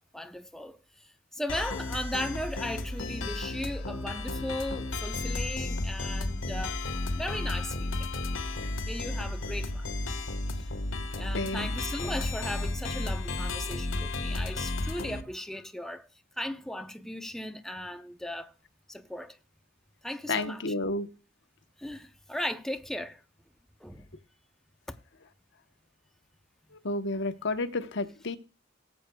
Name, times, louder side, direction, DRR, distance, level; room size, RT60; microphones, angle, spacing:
voice 1, 0.1-0.8 1.3-6.8 7.1-8.1 8.8-9.9 11.1-16.1 16.4-18.5 18.9-19.4 20.0-20.6 21.8-23.2 23.8-24.1 24.9-25.0, left 1 dB, ahead, 0.7 m, -37 dB
sound 1, 1.5-15.2, left 2 dB, 85° left, 1.4 m, -33 dB
voice 2, 11.3-11.7 20.3-21.1 26.8-28.4, left 2 dB, 65° left, 1.0 m, -31 dB
18.5 x 8.3 x 2.3 m
head